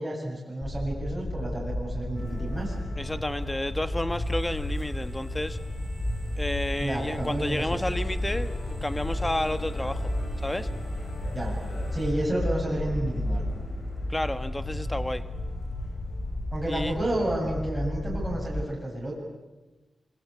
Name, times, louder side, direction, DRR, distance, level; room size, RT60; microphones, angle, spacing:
voice 1, 0.0-2.7 6.8-7.9 11.3-11.5 11.9-13.4 16.5-19.1, right 1 dB, 10° right, -4 dB, 8.0 m, -30 dB
sound 1, 0.6-18.6, left 1 dB, 35° left, 3.9 m, -32 dB
Musical instrument, 2.1-16.8, left 2 dB, 70° left, 6.1 m, -47 dB
voice 2, 3.0-5.6 6.4-10.1 10.4-10.7 14.1-15.2 16.7-17.0, left 1 dB, 10° left, 11 dB, 1.4 m, -31 dB
sound 2, 4.2-12.1, right 2 dB, 30° right, 6.9 m, -43 dB
25.5 x 23.5 x 8.4 m, 1.1 s
wide cardioid pair, 105°, 0 cm